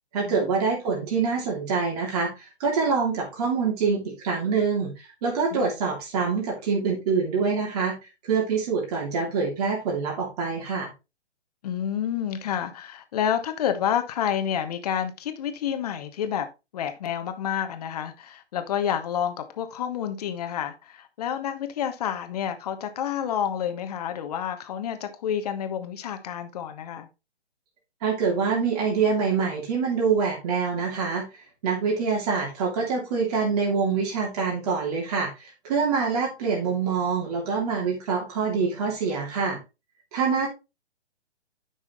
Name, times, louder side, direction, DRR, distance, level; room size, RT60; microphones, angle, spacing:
voice 1, 0.1-8.0 8.2-10.9 28.0-39.6 40.1-40.5, right 5 dB, 35° right, 3.0 m, -25 dB
voice 2, 11.6-16.5 16.7-27.1, left 9 dB, 35° left, 1.2 m, -29 dB
10.5 x 6.1 x 3.1 m
figure-of-eight pair, 130°, 33 cm